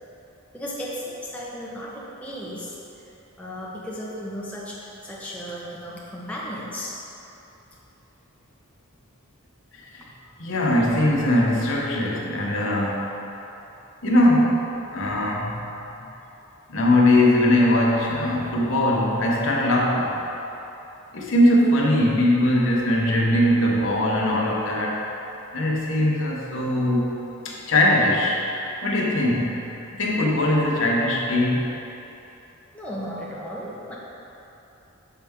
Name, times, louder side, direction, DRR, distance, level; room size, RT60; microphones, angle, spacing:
voice 1, 0.5-2.8 3.4-6.9 10.2-10.3 32.7-34.0, equal, 5° left, -6 dB, 0.8 m, -35 dB
voice 2, 10.4-13.1 14.0-15.6 16.7-20.2 21.1-25.1 25.5-27.2 27.4-28.4 28.8-29.6 29.9-31.7, left 1 dB, 60° left, -2 dB, 0.8 m, -21 dB
6.8 x 4.4 x 3.5 m, 3.0 s
head